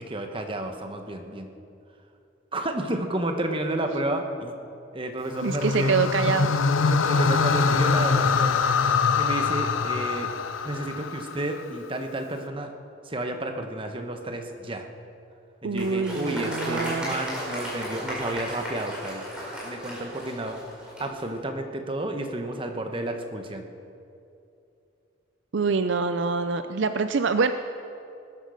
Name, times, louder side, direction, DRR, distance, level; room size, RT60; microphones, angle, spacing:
voice 1, 0.0-1.5 2.5-4.5 4.9-6.0 6.9-8.6 9.2-10.3 10.6-12.7 13.1-14.9 15.6-19.2 19.6-23.6, right 1 dB, 25° right, 5 dB, 1.2 m, -31 dB
sound 1, 5.3-11.6, left 5 dB, 80° left, 0.7 m, -24 dB
voice 2, 5.4-6.5 15.6-17.1 25.5-27.5, right 4 dB, 65° right, 10 dB, 0.5 m, -25 dB
Applause, 15.7-21.3, equal, 5° right, 4.6 m, -35 dB
19.0 x 10.5 x 6.5 m, 2.7 s
head